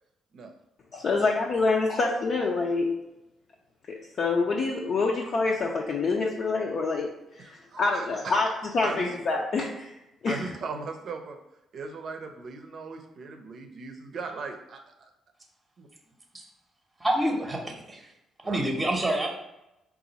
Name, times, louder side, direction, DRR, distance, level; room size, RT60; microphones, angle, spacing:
voice 1, 0.9-2.9 4.2-7.1 7.4-8.5 8.7-10.0 10.2-10.4, left 3 dB, 55° left, -2 dB, 0.6 m, -26 dB
voice 2, 7.4-8.4 8.8-9.1 10.3-11.4 11.7-15.1 15.8-15.9 18.4-18.6, right 4 dB, 60° right, 5 dB, 0.6 m, -38 dB
voice 3, 17.0-18.1 18.4-19.3, right 1 dB, 15° right, 2 dB, 0.8 m, -27 dB
3.9 x 2.5 x 4.0 m, 0.91 s
cardioid pair, 90°, 0 cm